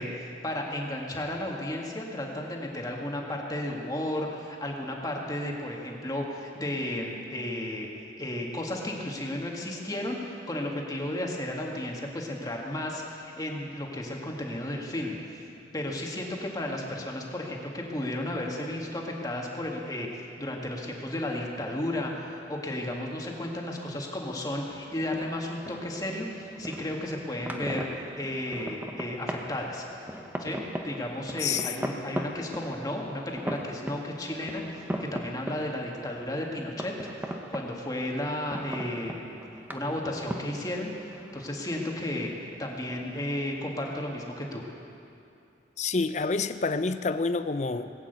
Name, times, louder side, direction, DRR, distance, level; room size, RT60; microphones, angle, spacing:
voice 1, 0.0-7.9 8.2-15.4 15.7-27.9 28.2-29.9 30.4-30.6 30.8-36.9 37.2-39.4 39.7-42.3 42.6-44.6, left 1 dB, 20° left, 0 dB, 1.8 m, -33 dB
sound 1, 24.7-44.0, equal, 10° right, 0.9 m, -40 dB
voice 2, 31.4-31.7 45.8-47.9, left 4 dB, 40° left, 11 dB, 0.5 m, -28 dB
19.5 x 9.0 x 8.1 m, 2.7 s
head